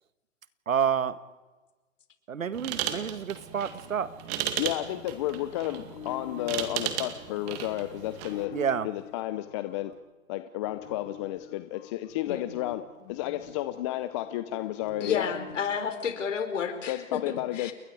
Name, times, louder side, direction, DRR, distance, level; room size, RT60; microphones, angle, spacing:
voice 1, 0.7-1.2 2.3-4.1 8.5-8.9, right 8 dB, 75° right, 14 dB, 1.7 m, -29 dB
sound 1, 2.5-8.5, right 10 dB, 30° right, 2.2 m, -35 dB
voice 2, 4.6-8.5 8.8-9.9 10.3-12.8 13.1-15.3 16.9-17.7, left 15 dB, 20° left, 11 dB, 0.7 m, -32 dB
sound 2, 5.2-9.9 10.6-15.5, left 10 dB, 40° left, 5.3 m, -46 dB
voice 3, 15.0-17.2 17.5-17.7, left 7 dB, 65° left, 7 dB, 4.4 m, -31 dB
30.0 x 22.0 x 4.9 m, 1.2 s
hypercardioid pair, 140°, 41 cm